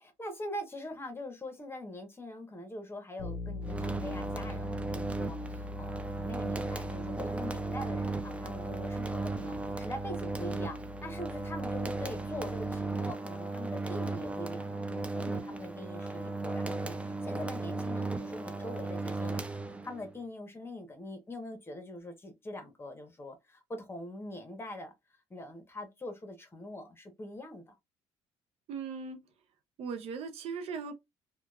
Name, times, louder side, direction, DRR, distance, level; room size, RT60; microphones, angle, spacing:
voice 1, 0.0-19.5 19.8-24.9 25.3-27.8, left 1 dB, 20° left, 1.0 m, -43 dB
Bass guitar, 3.2-13.0, left 3 dB, 85° left, 0.5 m, -43 dB
sound 1, 3.6-20.1, right 3 dB, 10° right, 0.4 m, -36 dB
voice 2, 28.7-29.3 29.8-30.9, right 5 dB, 65° right, 0.6 m, -38 dB
2.8 x 2.3 x 2.3 m
supercardioid pair, 85°, 11 cm